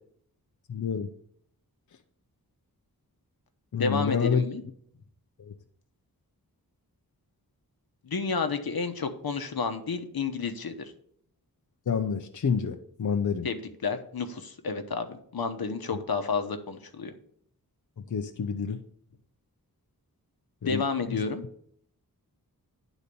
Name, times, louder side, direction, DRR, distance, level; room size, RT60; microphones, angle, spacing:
voice 1, 0.7-1.1 3.7-4.5 5.5-5.6 11.9-13.5 18.1-18.8 20.6-20.8 21.1-21.2, left 6 dB, 55° left, 6 dB, 0.6 m, -28 dB
voice 2, 3.8-4.6 8.0-10.9 13.4-17.1 20.6-21.4, left 4 dB, 75° left, 8 dB, 1.0 m, -31 dB
10.0 x 4.1 x 6.8 m, 0.65 s
wide cardioid pair, 100°, 37 cm